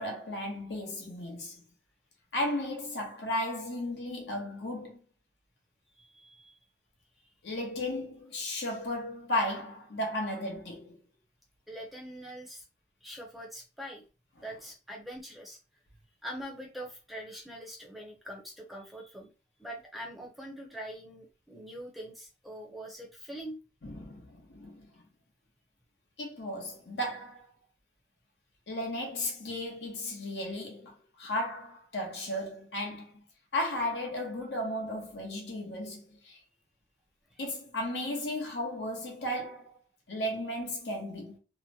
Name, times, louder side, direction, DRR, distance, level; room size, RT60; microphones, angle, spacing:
voice 1, 0.0-1.6 2.3-5.0 7.4-11.0 23.8-25.0 26.2-27.5 28.7-33.2 33.5-36.4 37.4-39.8 40.1-41.4, left 1 dB, 75° left, 0.9 m, -35 dB
voice 2, 6.0-6.6 7.2-7.3 11.7-12.6 13.0-14.0 14.4-15.6 16.2-19.3 19.6-23.6 37.3-37.5, equal, ahead, 0.5 m, -43 dB
2.8 x 2.1 x 2.7 m
head